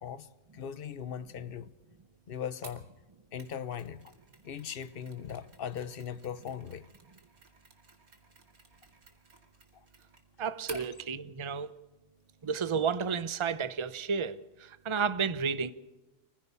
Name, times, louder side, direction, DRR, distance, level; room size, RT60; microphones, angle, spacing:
voice 1, 0.0-1.7 2.3-2.9 3.3-4.1 4.4-6.9 10.7-10.8, left 8 dB, 45° left, 1.0 m, -39 dB
Mechanisms, 2.6-10.9, right 3 dB, 80° right, 2.9 m, -54 dB
voice 2, 10.4-11.7 12.4-15.7, right 6 dB, 25° right, 0.7 m, -32 dB
24.5 x 15.5 x 7.0 m
omnidirectional pair, 1.5 m